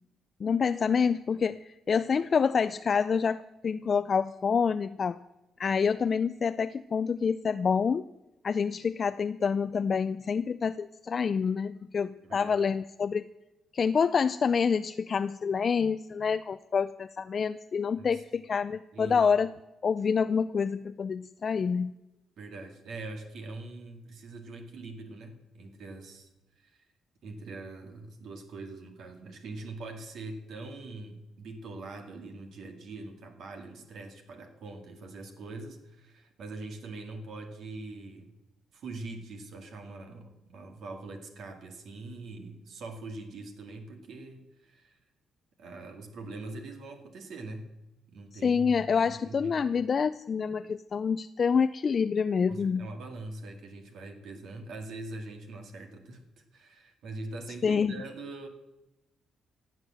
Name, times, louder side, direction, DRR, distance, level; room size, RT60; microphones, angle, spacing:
voice 1, 0.4-5.2 5.6-8.1 8.4-13.3 13.7-19.5 19.8-21.9 48.4-52.9 57.6-57.9, left 6 dB, 45° left, 11 dB, 0.4 m, -27 dB
voice 2, 12.2-12.6 18.0-18.2 18.9-19.2 22.4-26.3 26.6-26.8 27.2-38.3 38.7-45.0 45.6-47.7 48.1-49.5 52.5-58.5, right 2 dB, 70° right, 5 dB, 2.1 m, -43 dB
16.0 x 8.1 x 7.5 m, 0.98 s
cardioid pair, 90°, 0 cm